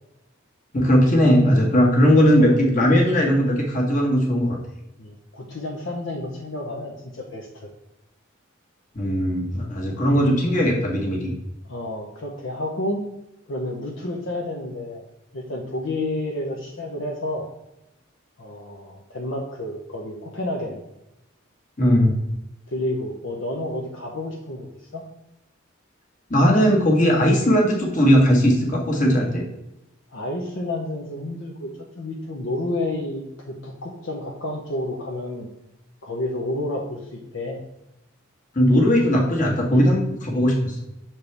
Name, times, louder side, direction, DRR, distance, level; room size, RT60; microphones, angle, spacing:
voice 1, 0.7-4.6 8.9-11.3 21.8-22.1 26.3-29.4 38.5-40.8, equal, 40° left, -1 dB, 1.5 m, -18 dB
voice 2, 5.0-7.7 11.7-13.0 13.5-15.0 15.3-17.5 18.4-20.8 22.7-25.0 30.1-31.7 32.0-35.5 36.0-37.6, left 1 dB, 60° left, -1 dB, 0.8 m, -30 dB
6.8 x 4.4 x 3.3 m, 0.91 s
head